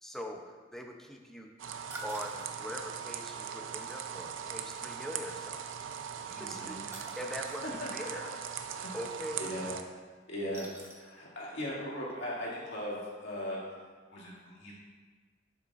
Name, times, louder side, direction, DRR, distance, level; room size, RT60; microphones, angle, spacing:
voice 1, 0.0-1.5 2.0-5.6 6.3-7.7 7.9-8.3 8.9-9.4, equal, ahead, 2 dB, 0.5 m, -42 dB
sound 1, 1.6-9.8, right 8 dB, 85° right, 0.5 m, -40 dB
sound 2, 1.9-2.5 4.9-5.0 6.9-7.3 10.5-11.2 11.6-11.7 12.1-12.2, right 1 dB, 15° right, 0.9 m, -46 dB
voice 2, 6.3-6.8 7.6-7.7 8.7-8.9 9.4-9.7 10.3-10.7 10.9-13.6 14.1-14.7, equal, 65° left, -6 dB, 2.3 m, -38 dB
11.5 x 7.3 x 2.5 m, 1.5 s
head